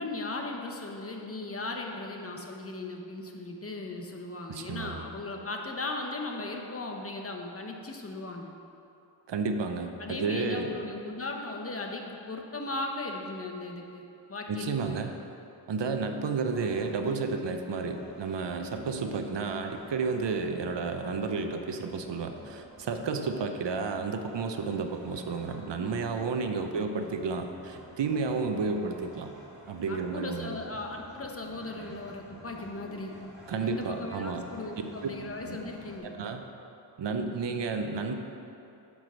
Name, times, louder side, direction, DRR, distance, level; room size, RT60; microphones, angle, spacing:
voice 1, 0.0-8.5 10.0-14.0 14.3-15.0 25.8-26.0 29.9-33.2 33.6-36.2, left 2 dB, 30° left, 1 dB, 0.8 m, -37 dB
voice 2, 4.5-5.0 9.3-10.8 14.5-15.1 15.7-29.3 29.7-30.6 33.5-34.4 35.0-35.1 35.4-35.6 36.2-36.4 37.0-38.1, right 4 dB, 75° right, 5 dB, 0.7 m, -31 dB
sound 1, 16.5-36.0, equal, ahead, 1.8 m, -50 dB
9.2 x 4.8 x 6.1 m, 2.8 s
wide cardioid pair, 130°, 43 cm